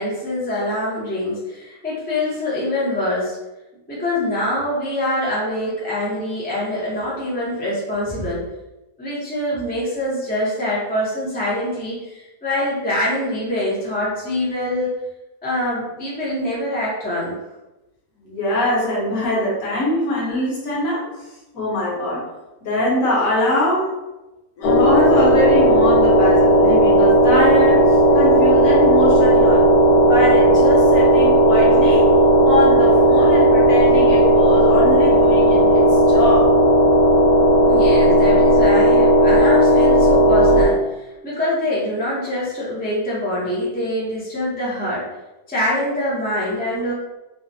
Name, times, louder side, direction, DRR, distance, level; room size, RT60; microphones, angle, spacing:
voice 1, 0.0-3.4 3.9-8.4 9.0-15.0 15.4-17.3 37.6-45.0 45.5-46.9, left 1 dB, 10° left, -8 dB, 0.4 m, -24 dB
voice 2, 18.2-21.0 21.5-22.2 22.6-23.9 24.6-27.8 28.1-29.7 30.1-32.1 32.4-36.5, left 1 dB, 60° left, -6 dB, 1.2 m, -22 dB
sound 1, 24.6-40.7, right 1 dB, 90° left, 1.2 m, -14 dB
3.1 x 2.1 x 2.6 m, 1.0 s
omnidirectional pair, 1.7 m